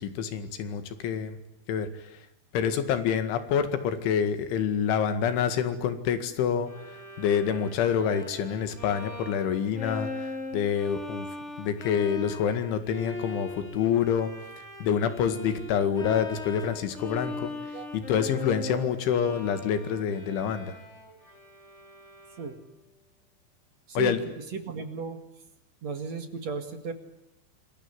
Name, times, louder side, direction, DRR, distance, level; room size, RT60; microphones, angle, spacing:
voice 1, 0.0-1.4 1.7-1.9 2.5-6.7 7.2-11.3 11.6-14.3 14.8-17.5 17.9-20.8 24.0-24.2, left 8 dB, 85° left, 10 dB, 4.4 m, -27 dB
Bowed string instrument, 6.7-22.7, left 2 dB, 20° left, 2.8 m, -40 dB
voice 2, 23.9-25.2 25.8-26.9, right 4 dB, 50° right, 8 dB, 2.5 m, -35 dB
27.0 x 22.0 x 9.8 m, 0.82 s
omnidirectional pair, 5.3 m